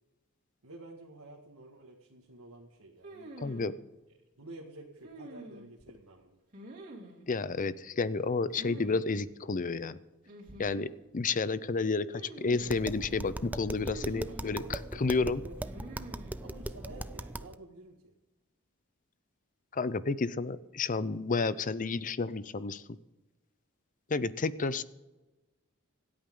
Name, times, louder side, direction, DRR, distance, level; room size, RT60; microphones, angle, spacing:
voice 1, 0.6-3.3 4.4-6.4 14.3-15.9 16.4-18.1, right 2 dB, 90° right, -2 dB, 1.9 m, -50 dB
sound 1, 3.0-3.7 5.0-5.9 6.5-7.2 8.5-9.0 9.3-9.4 10.3-11.0 12.1-12.8 13.9-14.6 15.6-16.4, right 1 dB, 40° right, 3.2 m, -47 dB
voice 2, 3.4-3.7 7.3-10.0 10.6-14.6 15.0-15.4 19.7-22.8 24.1-24.8, left 4 dB, 40° left, 16 dB, 0.6 m, -31 dB
Tap, 12.6-17.6, right 1 dB, 10° right, 0.4 m, -39 dB
26.5 x 8.8 x 3.8 m, 1.1 s
head